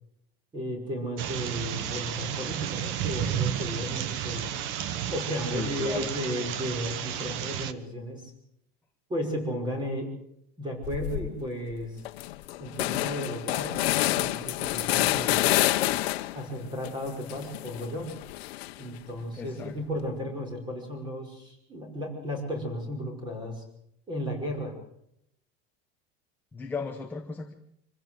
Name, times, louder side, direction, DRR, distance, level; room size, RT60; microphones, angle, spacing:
voice 1, 0.5-4.5 5.1-8.3 9.1-10.1 10.6-12.0 12.6-13.8 14.0-15.4 16.3-18.1 18.8-23.6 24.1-24.7, equal, 15° right, 4 dB, 5.6 m, -34 dB
sound 1, 1.2-7.7, right 10 dB, 40° right, 1.1 m, -32 dB
voice 2, 5.4-6.1 19.4-19.7 26.5-27.5, left 4 dB, 5° left, 2 dB, 1.1 m, -36 dB
sound 2, 10.8-11.3 11.7-11.8 12.0-16.5 16.8-19.0, left 17 dB, 75° left, 1.2 m, -28 dB
26.0 x 16.0 x 7.8 m, 0.76 s
supercardioid pair, 180°, 31 cm